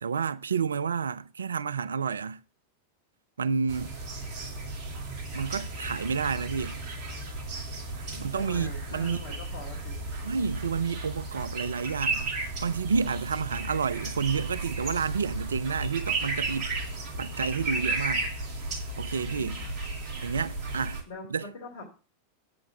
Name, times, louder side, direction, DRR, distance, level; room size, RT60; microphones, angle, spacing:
voice 1, 0.0-2.4 3.4-3.9 5.3-6.8 8.2-9.2 10.2-16.7 17.2-18.3 19.0-19.6 20.2-21.0 21.3-21.5, right 6 dB, 70° right, 0.4 m, -30 dB
sound 1, 3.7-21.0, right 2 dB, 40° right, 2.2 m, -34 dB
voice 2, 8.1-10.1 19.2-19.7 21.1-21.8, left 2 dB, 55° left, 3.3 m, -43 dB
8.5 x 6.3 x 5.7 m
figure-of-eight pair, 90°, 0 cm